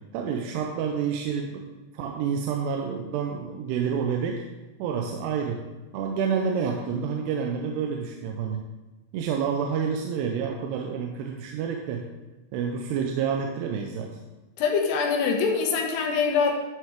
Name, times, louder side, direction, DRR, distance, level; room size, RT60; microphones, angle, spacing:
voice 1, 0.0-1.6 1.9-4.4 4.8-5.6 5.9-8.6 9.1-12.1 12.5-14.2, right 6 dB, 90° right, 2 dB, 2.7 m, -28 dB
voice 2, 14.6-16.5, left 5 dB, 85° left, 2 dB, 3.2 m, -24 dB
11.5 x 6.2 x 3.6 m, 1.2 s
omnidirectional pair, 4.7 m